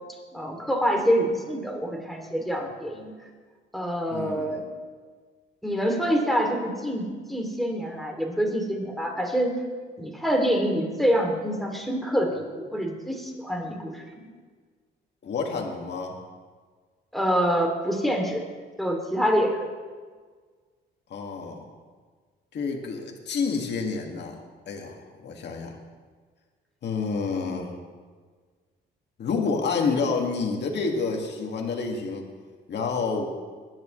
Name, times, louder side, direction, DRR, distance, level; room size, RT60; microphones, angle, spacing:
voice 1, 0.3-3.1 3.7-4.6 5.6-9.5 10.0-14.2 17.1-18.4 18.8-19.7, equal, ahead, 1 dB, 2.9 m, -26 dB
voice 2, 4.1-4.6 15.2-16.2 21.1-21.6 22.5-24.4 24.7-25.8 26.8-27.7 29.2-32.3 32.7-33.3, left 4 dB, 60° left, 1 dB, 2.1 m, -29 dB
20.5 x 10.5 x 3.3 m, 1.5 s
cardioid pair, 90°, 20 cm